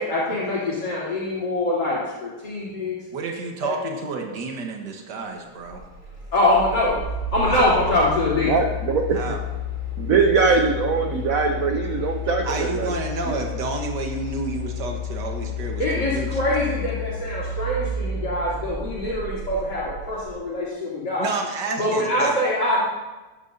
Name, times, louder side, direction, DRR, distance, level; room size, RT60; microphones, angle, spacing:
voice 1, 0.0-2.0 2.4-3.0 3.6-3.7 6.3-7.0 7.3-8.6 15.8-21.3 21.8-22.8, left 1 dB, 50° left, -8 dB, 3.8 m, -23 dB
voice 2, 3.1-5.8 7.5-7.7 9.1-9.4 12.4-16.4 21.2-22.4, right 3 dB, 55° right, 2 dB, 1.9 m, -30 dB
sound 1, 5.6-20.3, left 4 dB, 25° right, 4.2 m, -31 dB
voice 3, 8.5-9.3 10.0-12.9 13.3-13.4, right 5 dB, 70° right, 3 dB, 0.8 m, -21 dB
14.5 x 11.0 x 2.7 m, 1.2 s
omnidirectional pair, 2.4 m